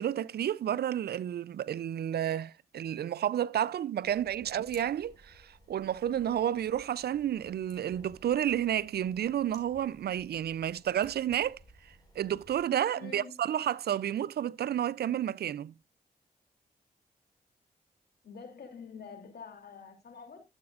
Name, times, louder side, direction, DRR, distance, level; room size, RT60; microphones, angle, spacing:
voice 1, 0.0-11.6 12.2-15.7, right 10 dB, 80° right, 0.4 m, -31 dB
sound 1, 4.0-12.6, equal, 25° left, 5.5 m, -58 dB
voice 2, 12.9-13.4 18.2-20.4, left 5 dB, 80° left, 3.0 m, -47 dB
13.0 x 8.0 x 2.4 m
cardioid pair, 45°, 16 cm